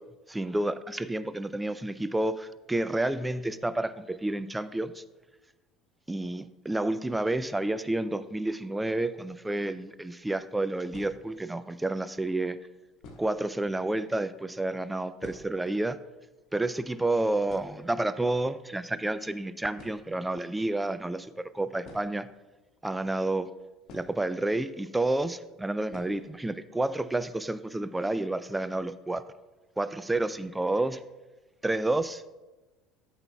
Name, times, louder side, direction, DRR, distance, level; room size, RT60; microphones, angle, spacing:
voice 1, 0.3-5.0 6.1-12.6 13.2-16.0 16.5-22.3 22.8-23.5 23.9-29.2 29.8-31.0 31.6-32.3, right 2 dB, 10° right, 14 dB, 0.3 m, -30 dB
sound 1, 10.0-10.1 10.9-11.6 12.4-12.5 13.0-13.5 13.8-13.9 14.2-14.3 14.7-15.8 16.1-16.2 16.4-16.7 17.1-17.2 17.5-18.4 19.3-19.4 19.7-20.3 21.8-22.9 23.9-24.7 24.9-25.0 25.9-26.3 26.7-26.8 27.1-27.2 27.6-28.0, left 2 dB, 45° left, 1.5 m, -50 dB
12.5 x 5.7 x 2.3 m, 1.2 s
figure-of-eight pair, 65°, 0 cm